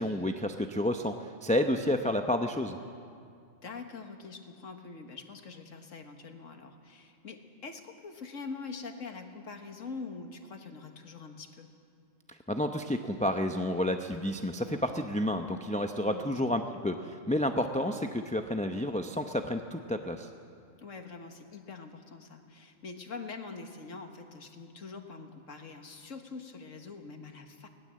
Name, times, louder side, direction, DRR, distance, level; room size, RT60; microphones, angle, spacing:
voice 1, 0.0-2.8 12.3-20.3, left 1 dB, 10° left, 5 dB, 0.5 m, -30 dB
voice 2, 3.6-11.7 16.0-16.3 16.7-16.8 20.8-27.7, left 4 dB, 85° left, 5 dB, 1.9 m, -44 dB
20.5 x 19.0 x 7.6 m, 2.3 s
omnidirectional pair, 1.3 m